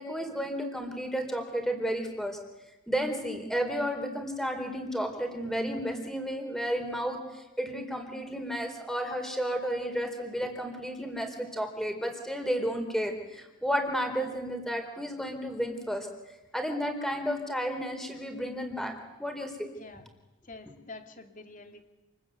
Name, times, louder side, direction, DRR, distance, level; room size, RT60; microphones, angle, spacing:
voice 1, 0.0-2.4 2.9-16.1 16.5-18.9 19.2-19.7, equal, ahead, 5 dB, 4.0 m, -32 dB
voice 2, 20.4-21.9, left 3 dB, 35° left, 6 dB, 2.6 m, -47 dB
28.5 x 21.0 x 9.4 m, 1.0 s
head